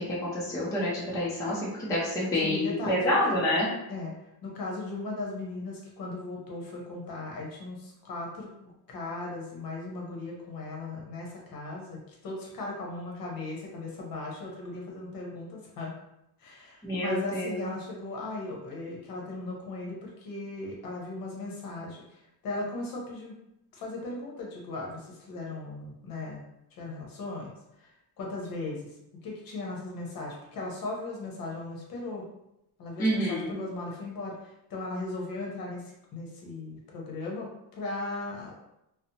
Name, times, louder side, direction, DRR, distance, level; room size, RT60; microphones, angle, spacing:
voice 1, 0.0-3.7 16.8-17.6 33.0-33.5, left 1 dB, 10° left, -7 dB, 0.4 m, -28 dB
voice 2, 2.4-3.4 3.9-4.1 4.4-15.9 16.4-23.4 23.7-26.4 26.8-27.5 27.8-27.9 28.2-28.9 29.2-32.3 32.8-37.5 37.8-38.5, left 2 dB, 55° left, -2 dB, 0.8 m, -37 dB
2.7 x 2.0 x 2.6 m, 0.85 s
cardioid pair, 180°, 40 cm